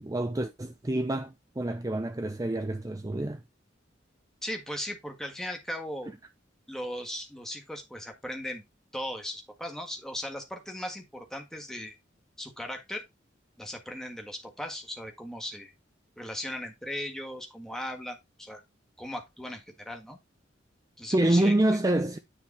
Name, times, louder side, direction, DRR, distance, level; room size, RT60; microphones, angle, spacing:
voice 1, 0.0-3.4 21.1-22.2, right 1 dB, 20° right, 0.5 m, -27 dB
voice 2, 4.4-6.1 6.7-8.6 8.9-12.0 12.4-13.0 13.6-15.7 16.2-18.6 19.0-20.2 21.0-21.5, left 1 dB, 5° left, 1.5 m, -38 dB
9.9 x 3.5 x 4.2 m
head